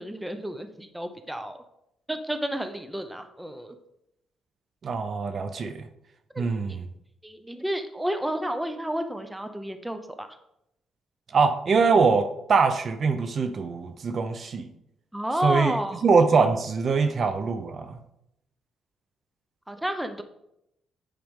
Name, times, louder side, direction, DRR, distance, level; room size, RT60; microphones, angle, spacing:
voice 1, 0.0-1.6 2.1-3.8 6.3-6.8 7.2-10.4 15.1-16.0 19.7-20.2, equal, 5° right, 8 dB, 0.7 m, -31 dB
voice 2, 4.8-5.8 6.4-6.8 11.3-14.7 15.4-15.7 16.0-18.0, right 4 dB, 50° right, 9 dB, 0.6 m, -23 dB
8.8 x 5.0 x 3.7 m, 0.81 s
cardioid pair, 90°, 0 cm